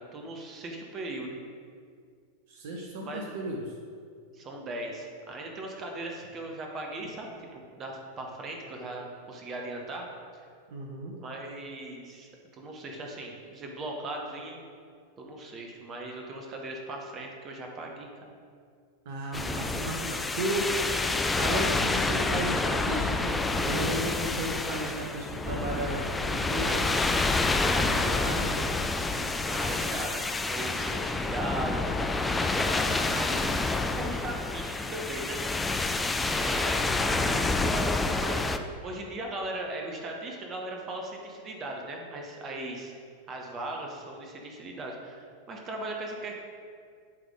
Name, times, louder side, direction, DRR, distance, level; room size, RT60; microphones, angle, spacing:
voice 1, 0.0-1.4 3.0-3.3 4.3-10.1 11.2-14.7 15.2-18.1 29.1-31.9 32.4-35.7 36.2-42.9 43.3-46.3, right 2 dB, 30° right, 1 dB, 1.1 m, -38 dB
voice 2, 2.5-3.7 10.7-11.1 19.0-21.1 21.3-28.9 36.8-37.3, right 1 dB, 50° right, -1 dB, 0.8 m, -34 dB
sound 1, 19.3-38.6, left 3 dB, 10° left, 0.3 m, -28 dB
10.5 x 3.6 x 3.7 m, 2.2 s
figure-of-eight pair, 90°, 0 cm